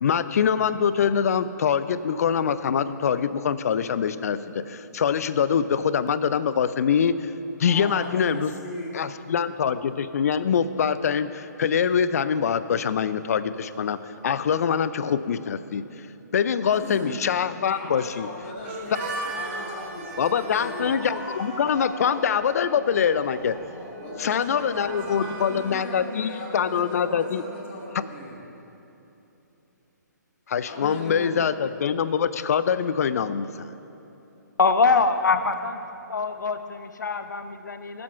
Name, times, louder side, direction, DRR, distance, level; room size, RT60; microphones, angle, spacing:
voice 1, 0.0-7.3 7.6-8.5 8.9-14.0 14.2-15.8 16.3-18.3 20.2-23.6 24.2-27.4 30.5-33.7, left 7 dB, 55° left, 14 dB, 0.5 m, -24 dB
voice 2, 7.7-8.9 16.7-17.2 17.7-19.1 19.3-21.0 24.0-28.4 30.6-31.4, left 1 dB, 40° left, -2 dB, 2.6 m, -38 dB
Growling, 18.6-25.4, equal, 10° right, 1.8 m, -41 dB
Harmonica, 18.6-28.3, right 2 dB, 40° right, 1.7 m, -40 dB
voice 3, 34.6-35.8 36.1-38.0, left 4 dB, 70° left, 9 dB, 0.9 m, -23 dB
18.0 x 7.9 x 4.5 m, 3.0 s
figure-of-eight pair, 135°, 10 cm